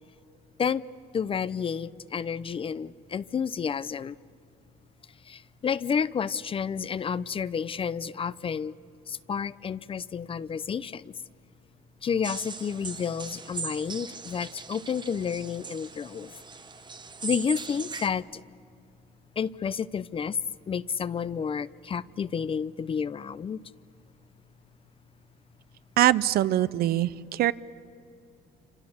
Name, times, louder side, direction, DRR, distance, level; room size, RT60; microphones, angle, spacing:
voice 1, 1.1-4.2 5.3-8.7 9.1-11.1 12.0-16.3 17.2-18.4 19.4-20.4 20.7-23.6, left 7 dB, 30° left, 0.6 m, -30 dB
sound 1, 12.2-18.1, right 5 dB, 25° right, 1.0 m, -39 dB
voice 2, 26.0-27.5, right 13 dB, 65° right, 0.7 m, -23 dB
28.5 x 26.0 x 7.1 m
cardioid pair, 110°, 17 cm